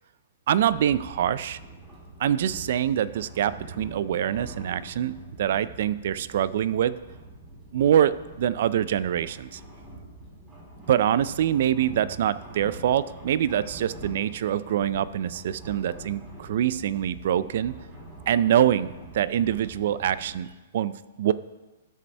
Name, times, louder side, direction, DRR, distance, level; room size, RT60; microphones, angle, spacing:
sound 1, 0.5-20.5, right 1 dB, 20° right, 3.1 m, -44 dB
voice 1, 0.5-1.6 2.2-7.0 7.7-9.6 10.9-17.8 18.3-20.5 20.7-20.9 21.2-21.3, right 10 dB, 60° right, 17 dB, 0.4 m, -24 dB
13.0 x 5.2 x 3.3 m, 1.1 s
hypercardioid pair, 150°, 0 cm